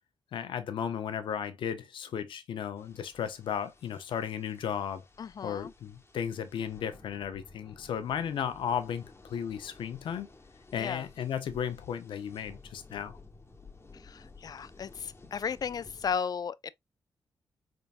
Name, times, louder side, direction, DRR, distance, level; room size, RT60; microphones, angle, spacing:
voice 1, 0.3-5.0 5.4-10.3 10.7-13.2, left 8 dB, 80° left, 0.7 m, -35 dB
sound 1, 2.8-16.2, left 3 dB, 30° left, 1.1 m, -54 dB
voice 2, 5.2-5.7 10.8-11.1 14.0-16.7, left 6 dB, 50° left, 0.4 m, -35 dB
4.0 x 3.5 x 2.5 m
supercardioid pair, 45°, 8 cm